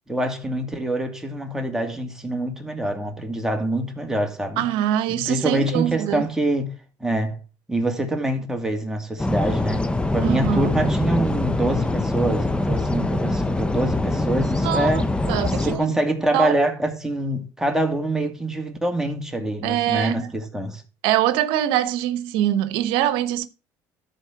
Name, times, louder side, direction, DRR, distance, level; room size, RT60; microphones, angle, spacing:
voice 1, 0.1-4.7 5.1-6.7 7.0-7.4 7.7-15.1 15.5-20.8, right 1 dB, 5° right, 2.4 m, -25 dB
voice 2, 4.6-6.2 10.2-10.7 14.6-15.9 16.3-16.5 19.6-20.3 21.0-23.5, right 12 dB, 75° right, 1.0 m, -23 dB
sound 1, 9.2-15.8, left 2 dB, 10° left, 0.8 m, -23 dB
13.0 x 4.4 x 5.9 m
supercardioid pair, 95°, 9 cm